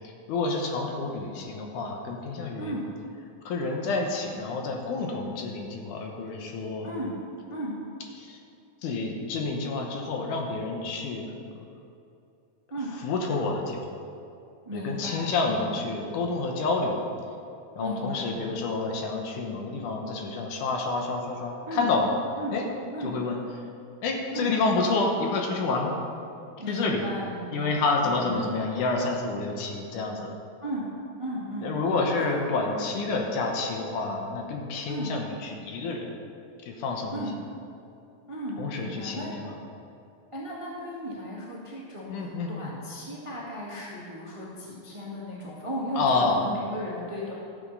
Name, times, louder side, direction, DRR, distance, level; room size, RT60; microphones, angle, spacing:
voice 1, 0.3-2.8 3.5-6.9 8.2-8.4 8.8-11.6 13.0-13.9 14.7-17.0 17.8-22.1 22.5-22.7 23.0-23.4 24.0-26.0 26.7-27.1 27.5-30.3 31.6-36.1 36.7-37.2 38.6-39.5 42.1-42.7 46.0-46.4, left 3 dB, 75° left, 1 dB, 2.4 m, -29 dB
voice 2, 6.8-7.1 7.5-7.8 12.7-13.0 14.6-15.8 17.8-18.3 21.7-21.9 22.4-22.6 22.9-23.2 24.3-24.5 26.6-28.5 30.6-30.9 31.2-31.7 32.3-32.5 34.9-35.1 37.1-37.4 38.3-39.3 40.3-47.3, equal, 15° right, -6 dB, 1.3 m, -35 dB
13.5 x 7.2 x 5.5 m, 2.7 s
omnidirectional pair, 3.9 m